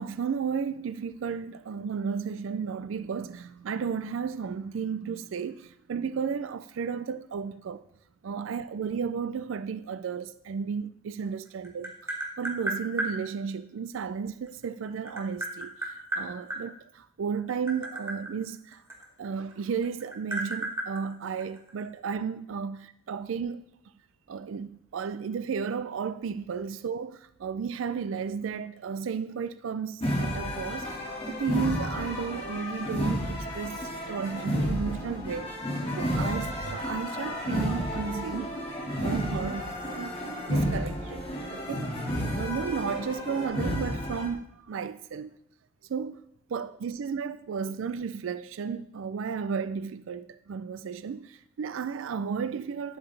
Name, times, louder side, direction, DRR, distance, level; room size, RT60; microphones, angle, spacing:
voice 1, 0.0-7.8 8.2-11.9 12.4-18.8 19.2-22.8 23.1-23.6 24.3-38.6 39.0-40.2 40.5-41.9 42.3-45.3 45.9-46.2 46.5-53.0, right 6 dB, 75° right, 0.4 m, -33 dB
Tap, 11.3-13.1 14.5-16.6 17.4-19.5 19.8-21.8, right 1 dB, 15° right, 1.7 m, -33 dB
procesion de la borriquita Tarifa, 30.0-44.3, equal, 30° left, 1.9 m, -31 dB
11.0 x 7.9 x 3.3 m
head